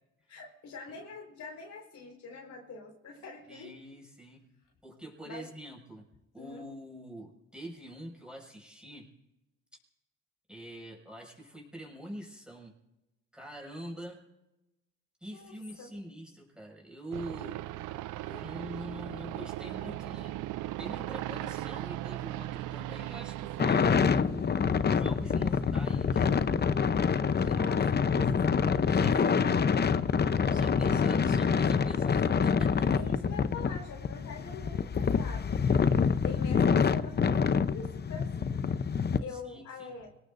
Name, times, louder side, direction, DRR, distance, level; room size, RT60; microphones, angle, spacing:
voice 1, 0.3-3.8 5.2-5.5 6.4-6.7 15.3-15.9 27.3-28.4 28.9-29.9 32.9-35.6 36.2-38.3 39.2-40.1, left 4 dB, 70° left, 0 dB, 4.7 m, -44 dB
voice 2, 3.5-4.5 4.8-6.1 6.3-9.1 10.5-12.7 13.3-14.2 15.2-17.6 18.2-20.3 20.8-24.5 24.9-26.3 27.3-28.0 28.8-29.3 30.5-32.9 39.3-39.9, right 1 dB, 5° right, -1 dB, 6.2 m, -45 dB
sound 1, 17.1-24.1, right 15 dB, 90° right, 0.5 m, -38 dB
sound 2, 23.6-39.2, left 6 dB, 35° left, 0.7 m, -26 dB
26.5 x 18.5 x 2.6 m, 0.96 s
cardioid pair, 90°, 30 cm